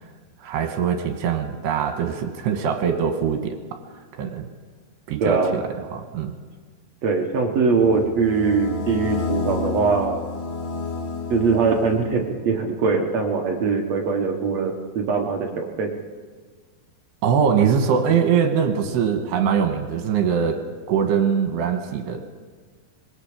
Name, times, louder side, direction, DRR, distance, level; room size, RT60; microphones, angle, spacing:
voice 1, 0.4-3.6 4.1-4.5 5.1-5.6 5.9-6.3 17.2-20.6 20.9-22.3, right 7 dB, 75° right, 5 dB, 3.4 m, -22 dB
voice 2, 5.2-5.6 7.0-10.2 11.3-15.9, right 4 dB, 60° right, 2 dB, 1.8 m, -22 dB
sound 1, 7.7-12.4, left 4 dB, 40° left, 2.5 m, -30 dB
24.5 x 21.5 x 5.1 m, 1.5 s
omnidirectional pair, 5.0 m